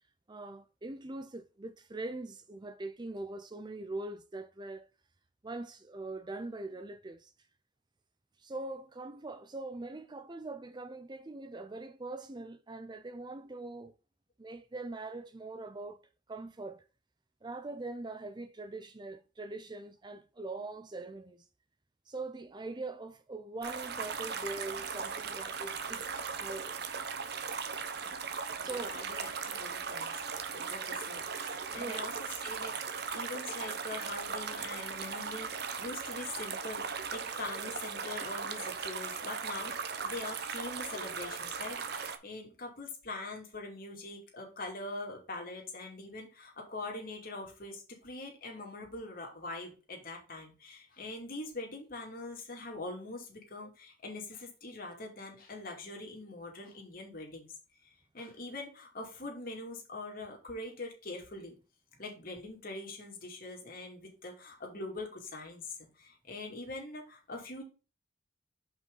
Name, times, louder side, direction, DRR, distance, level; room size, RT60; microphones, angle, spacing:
voice 1, 0.3-4.9 5.4-7.3 8.4-13.9 14.4-16.0 16.3-16.8 17.4-21.5 22.1-26.1 26.4-26.8 28.6-29.2 31.7-32.1, right 2 dB, 25° right, 0.5 m, -42 dB
sound 1, 23.6-42.2, right 6 dB, 60° right, 0.9 m, -38 dB
voice 2, 28.6-30.2 30.5-32.1 32.4-57.5 58.1-61.5 62.0-67.6, left 2 dB, 50° left, 2.6 m, -43 dB
7.2 x 5.4 x 3.9 m
head